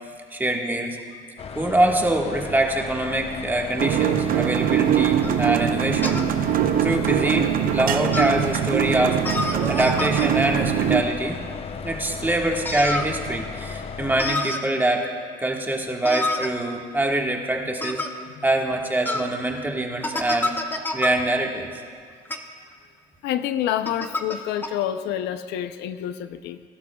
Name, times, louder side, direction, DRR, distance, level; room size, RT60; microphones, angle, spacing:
voice 1, 0.3-1.0 1.5-6.2 6.8-9.2 9.7-11.4 11.8-15.1 15.4-18.0 18.4-20.5 20.9-21.8, right 1 dB, 10° right, 0 dB, 1.5 m, -24 dB
sound 1, 1.4-14.3, left 6 dB, 35° left, 0.5 m, -35 dB
sound 2, 3.8-11.0, right 10 dB, 60° right, 0.7 m, -22 dB
sound 3, 5.2-5.4 6.0-6.3 7.0-7.1 8.1-8.4 9.2-10.3 12.7-13.1 14.2-14.6 16.0-16.5 17.8-18.1 19.1-19.3 20.0-21.1 22.3-22.4 23.8-24.4 24.6-24.7, left 2 dB, 10° left, 0.9 m, -27 dB
voice 2, 23.2-26.6, left 11 dB, 85° left, 10 dB, 0.6 m, -28 dB
21.5 x 12.0 x 2.3 m, 2.2 s
cardioid pair, 110°, 17 cm